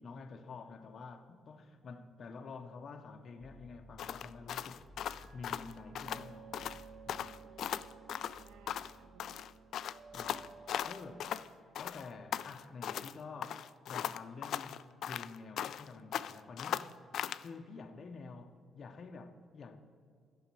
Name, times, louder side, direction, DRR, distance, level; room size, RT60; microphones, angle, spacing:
voice 1, 0.0-4.9 5.3-6.7 7.1-7.4 10.1-11.4 11.8-16.9 17.4-19.8, left 4 dB, 50° left, 0.7 m, -49 dB
sound 1, 1.8-4.6 5.1-11.3, right 6 dB, 45° right, 1.6 m, -57 dB
sound 2, 3.4-12.5, equal, 15° right, 2.5 m, -60 dB
sound 3, 4.0-6.3 6.5-6.8 7.1-8.9 9.2-11.5 11.7-13.1 13.4-15.9 16.1-17.5, left 10 dB, 70° left, 0.3 m, -39 dB
voice 2, 7.4-9.5, right 8 dB, 85° right, 0.5 m, -62 dB
11.5 x 5.5 x 7.6 m
cardioid pair, 90°, 0 cm